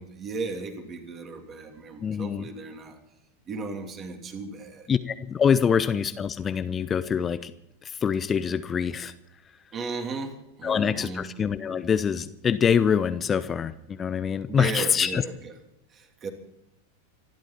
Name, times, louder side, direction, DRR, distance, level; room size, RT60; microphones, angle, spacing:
voice 1, 0.0-3.0 3.5-4.9 9.7-11.3 14.5-15.5 15.9-16.3, right 4 dB, 25° right, 4 dB, 3.1 m, -35 dB
voice 2, 2.0-2.5 4.9-7.5 7.8-9.1 10.6-15.2, left 7 dB, 20° left, 13 dB, 0.7 m, -25 dB
25.5 x 12.0 x 4.4 m, 0.81 s
figure-of-eight pair, 90°, 0 cm